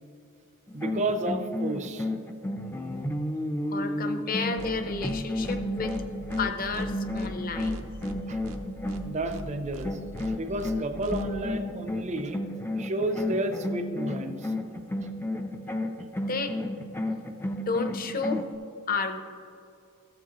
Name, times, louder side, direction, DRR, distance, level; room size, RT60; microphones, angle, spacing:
sound 1, 0.7-9.5 9.8-18.5, left 1 dB, 10° left, 0.4 m, -32 dB
voice 1, 0.7-2.1 8.3-8.4 9.0-10.0 10.2-12.4 12.8-14.5, right 1 dB, 35° right, 8 dB, 0.6 m, -31 dB
voice 2, 3.7-6.0 6.4-7.9 16.2-16.6 17.5-18.4 18.9-19.2, left 4 dB, 40° left, 7 dB, 0.7 m, -31 dB
sound 2, 4.6-4.7 5.0-5.1 5.4-5.6 5.9-6.0 6.3-6.4 6.7-6.9 7.1-7.3 7.6-8.1 8.4-8.6 8.9-9.0 9.3-9.4 9.7-9.9 10.1-10.3 10.6-10.7 11.0-11.2, right 2 dB, 80° right, 0.7 m, -40 dB
14.5 x 7.3 x 3.0 m, 2.5 s
head